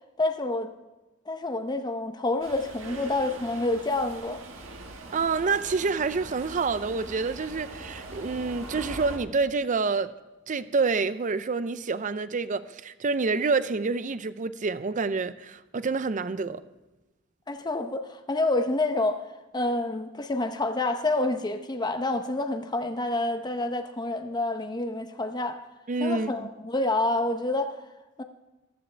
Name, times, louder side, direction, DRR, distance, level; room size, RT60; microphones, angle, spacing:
voice 1, 0.2-0.7 1.3-4.4 17.5-19.2 19.5-25.6 26.0-27.8 28.2-28.3, left 2 dB, 20° left, 0.8 m, -28 dB
Subway metro underground, 2.4-9.2, right 2 dB, 80° right, 1.7 m, -41 dB
voice 2, 5.1-10.1 10.5-16.6 25.9-26.5, right 4 dB, 40° right, 0.5 m, -27 dB
15.0 x 13.5 x 3.4 m
head